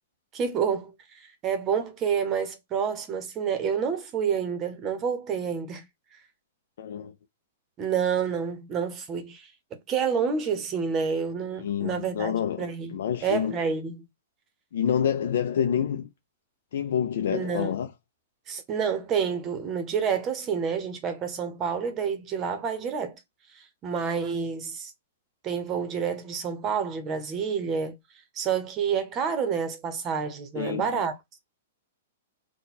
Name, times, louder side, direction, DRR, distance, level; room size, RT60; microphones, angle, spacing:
voice 1, 0.3-5.8 7.8-9.5 9.9-14.0 17.3-17.8 18.5-23.2 23.5-24.9 25.4-28.0 28.3-31.4, right 6 dB, 20° right, 0.8 m, -29 dB
voice 2, 6.8-7.1 11.6-13.6 14.7-16.1 16.7-17.9 30.6-31.0, left 8 dB, 65° left, 0.4 m, -28 dB
4.1 x 2.2 x 4.1 m
hypercardioid pair, 165°, 0 cm